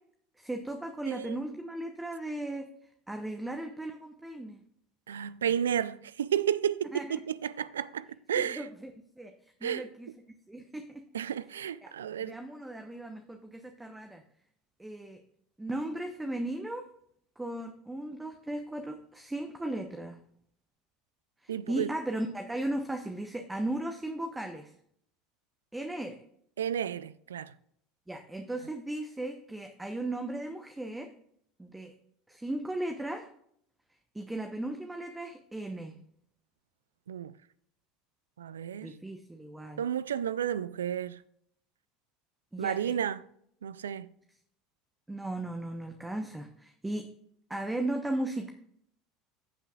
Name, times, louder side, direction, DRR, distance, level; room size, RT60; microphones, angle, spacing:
voice 1, 0.4-2.7 3.1-4.6 6.9-7.2 8.4-8.9 9.2-9.3 9.6-10.1 10.5-11.0 11.8-14.2 14.8-15.2 15.6-16.8 17.4-20.2 21.4-24.7 25.7-26.2 28.1-31.1 31.6-31.9 32.3-33.3 34.1-35.9 38.8-39.8 42.5-43.0 45.1-47.1 47.5-48.5, right 1 dB, 10° right, 0.9 m, -36 dB
voice 2, 1.1-1.4 5.1-8.7 9.6-9.8 11.1-12.4 21.5-21.9 26.6-27.5 37.1-37.3 38.4-39.0 39.8-41.2 42.6-43.2 43.6-44.1, right 9 dB, 85° right, 0.3 m, -32 dB
14.5 x 5.7 x 2.4 m
hypercardioid pair, 75°, 0 cm